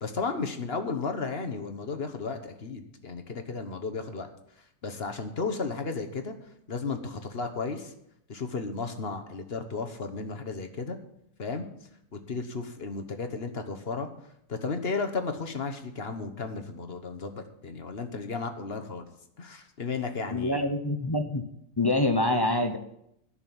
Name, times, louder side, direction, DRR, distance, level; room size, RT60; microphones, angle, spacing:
voice 1, 0.0-4.3 4.8-6.3 6.7-7.9 8.3-11.0 11.4-11.7 12.1-14.1 14.5-19.0 19.4-20.7, left 4 dB, 40° left, 6 dB, 1.2 m, -34 dB
voice 2, 20.3-21.4 21.8-22.8, left 2 dB, 25° left, 7 dB, 0.6 m, -25 dB
11.0 x 6.5 x 9.1 m, 0.75 s
omnidirectional pair, 1.7 m